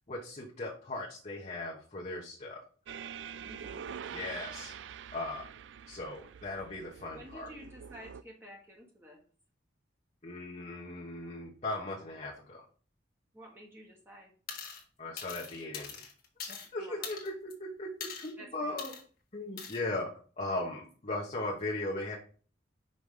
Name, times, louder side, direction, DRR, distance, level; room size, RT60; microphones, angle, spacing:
voice 1, 0.1-2.6 4.1-4.7 5.1-5.5 5.9-7.5 10.2-12.6 15.0-16.0 16.4-18.9 19.3-22.2, left 2 dB, 40° left, -2 dB, 1.1 m, -38 dB
sound 1, 2.9-8.2, right 8 dB, 75° right, 0.4 m, -45 dB
voice 2, 3.4-3.9 7.1-9.2 13.3-14.3 16.8-17.2 18.4-18.8, equal, 15° right, -1 dB, 1.3 m, -51 dB
sound 2, 14.5-14.8 15.2-16.7 17.0-17.5 18.0-18.3 18.8-19.0 19.6-19.8, left 6 dB, 55° left, 1.4 m, -42 dB
5.5 x 5.1 x 4.9 m, 0.42 s
head